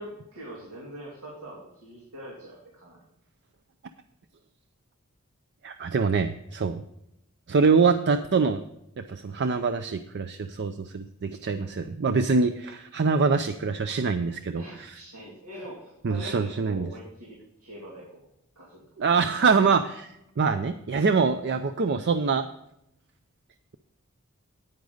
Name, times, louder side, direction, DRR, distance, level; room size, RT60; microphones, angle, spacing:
voice 1, 0.0-3.0 14.6-18.3 18.6-18.8, equal, 85° right, -3 dB, 2.7 m, -43 dB
voice 2, 5.6-6.8 7.5-8.6 9.0-14.6 16.0-16.9 19.0-22.4, right 4 dB, 50° right, 10 dB, 0.5 m, -24 dB
9.9 x 9.4 x 3.9 m, 0.82 s
head